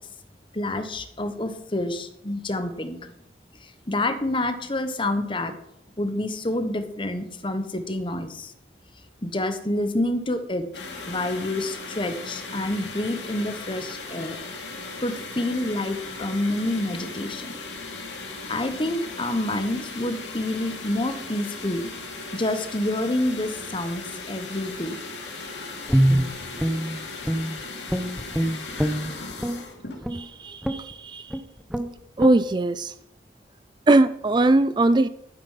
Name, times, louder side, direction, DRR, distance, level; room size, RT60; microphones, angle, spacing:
voice 1, 0.5-3.1 3.6-5.6 6.0-8.5 9.2-10.7 11.1-14.4 15.0-17.5 18.5-21.9 22.3-25.0, left 1 dB, 30° left, 9 dB, 1.2 m, -28 dB
sound 1, 10.7-30.1, left 3 dB, 90° left, 2.9 m, -37 dB
Guitar, 25.9-27.6 27.9-29.6 30.0-30.2 30.6-30.9 31.3-31.4 31.7-31.9 32.2-32.4, equal, ahead, 0.9 m, -24 dB
voice 2, 30.1-31.3 32.2-32.9 33.9-35.1, right 2 dB, 25° right, 14 dB, 0.4 m, -20 dB
12.5 x 9.1 x 5.7 m, 0.80 s
head